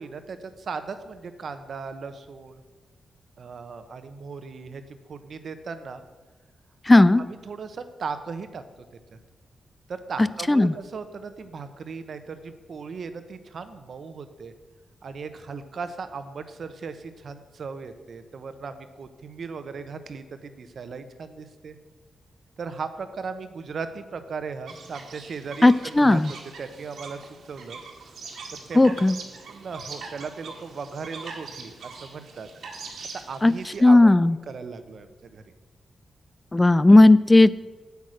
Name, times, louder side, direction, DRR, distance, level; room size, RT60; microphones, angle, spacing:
voice 1, 0.0-2.6 3.4-6.0 6.9-8.6 9.1-9.2 9.9-14.5 15.0-21.8 22.6-26.2 26.6-27.8 28.7-29.2 29.5-32.5 33.3-34.1 34.5-35.4, right 5 dB, 65° right, 10 dB, 0.9 m, -37 dB
voice 2, 6.9-7.2 10.5-10.7 25.6-26.3 28.8-29.1 33.4-33.5 33.8-34.3 36.5-37.5, left 2 dB, 20° left, 17 dB, 0.3 m, -15 dB
sound 1, 24.7-33.8, right 4 dB, 80° right, 1.8 m, -42 dB
8.3 x 8.2 x 6.4 m, 1.3 s
cardioid pair, 85°, 0 cm